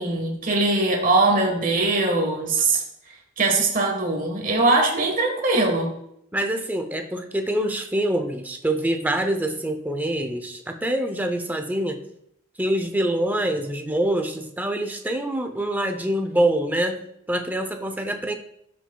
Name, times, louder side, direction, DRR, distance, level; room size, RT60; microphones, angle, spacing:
voice 1, 0.0-2.8 3.4-5.9, right 2 dB, 40° right, 3 dB, 1.4 m, -21 dB
voice 2, 6.3-12.0 12.6-17.0 17.3-18.3, right 1 dB, 10° right, 5 dB, 0.6 m, -25 dB
12.0 x 6.1 x 2.3 m, 0.77 s
head